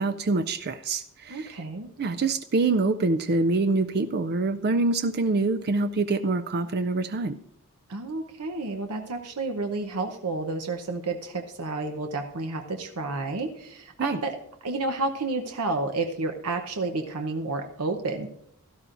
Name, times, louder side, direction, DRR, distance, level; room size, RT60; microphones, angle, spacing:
voice 1, 0.0-1.6 2.0-7.4 14.0-14.2, right 3 dB, 45° right, 11 dB, 0.4 m, -25 dB
voice 2, 1.3-1.9 7.9-14.4 14.6-18.3, right 3 dB, 80° right, 5 dB, 0.9 m, -30 dB
16.5 x 12.5 x 2.6 m, 0.71 s
head